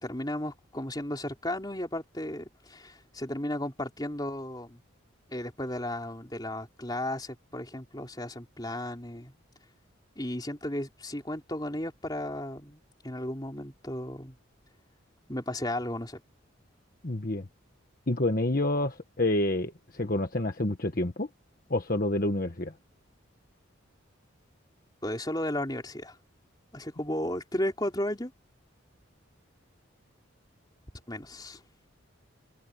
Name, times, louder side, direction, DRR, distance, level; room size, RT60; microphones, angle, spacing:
voice 1, 0.0-4.8 5.3-9.3 10.2-14.4 15.3-16.2 25.0-26.2 26.7-28.3 31.1-31.6, left 1 dB, 20° left, 3.8 m, -34 dB
voice 2, 17.0-17.5 18.1-21.3 21.7-22.7, left 1 dB, 45° left, 1.4 m, -28 dB
head